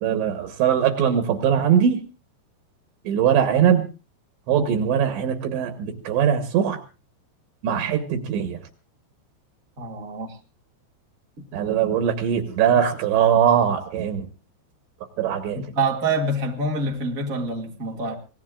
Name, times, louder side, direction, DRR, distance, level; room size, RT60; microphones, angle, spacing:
voice 1, 0.0-2.0 3.1-3.9 4.5-6.8 7.6-8.6 11.5-14.2 15.2-15.6, right 8 dB, 75° right, 3.4 m, -21 dB
voice 2, 9.8-10.3 15.5-18.1, right 2 dB, 60° right, 0.9 m, -26 dB
25.5 x 18.5 x 2.4 m
omnidirectional pair, 5.5 m